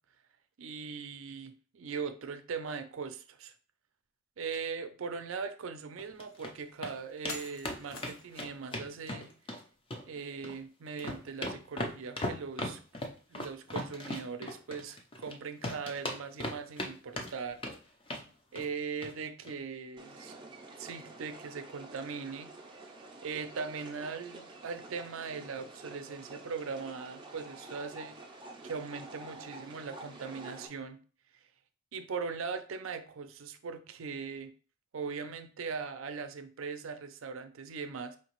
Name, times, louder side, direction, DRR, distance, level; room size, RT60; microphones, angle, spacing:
voice 1, 0.6-3.5 4.4-9.3 10.1-12.8 13.3-17.6 18.5-20.3 20.8-22.8 23.2-28.1 28.6-31.0 31.9-34.5 34.9-38.2, right 5 dB, 70° right, 10 dB, 0.5 m, -40 dB
sound 1, 4.5-4.7 5.2-5.3 6.2-6.3 7.3-8.4, left 4 dB, 85° left, 0.6 m, -45 dB
sound 2, 6.0-6.5 6.8-6.9 7.2-7.4 7.6-9.6 9.9-10.6 10.9-15.3 15.6-16.9 17.2-17.8 18.1-18.3 18.5-18.7 19.0-19.1 19.4-19.5, left 1 dB, 25° left, 0.5 m, -38 dB
sound 3, 20.0-30.7, right 2 dB, 25° right, 0.5 m, -49 dB
4.7 x 2.8 x 3.0 m, 0.39 s
head